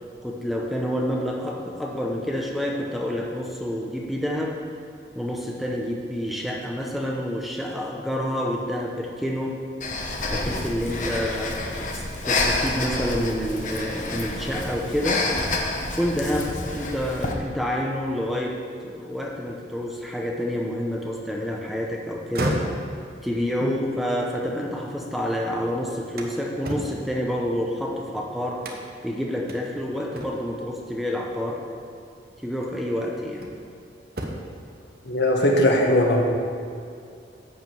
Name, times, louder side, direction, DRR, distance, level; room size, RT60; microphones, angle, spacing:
voice 1, 0.2-4.6 5.2-9.6 10.3-15.3 16.0-18.6 18.8-22.6 23.2-28.6 29.0-31.6 32.4-33.4, equal, ahead, -1 dB, 0.8 m, -28 dB
Breathing, 9.8-17.3, left 2 dB, 45° left, 1.1 m, -28 dB
sound 1, 22.2-25.3 25.7-28.0 28.6-29.1 29.5-29.6 30.1-30.7 31.9-32.0 32.6-33.7 34.1-34.7, right 1 dB, 55° right, 1.1 m, -34 dB
voice 2, 35.0-36.2, left 1 dB, 70° left, 0 dB, 1.6 m, -19 dB
11.0 x 5.1 x 7.8 m, 2.4 s
head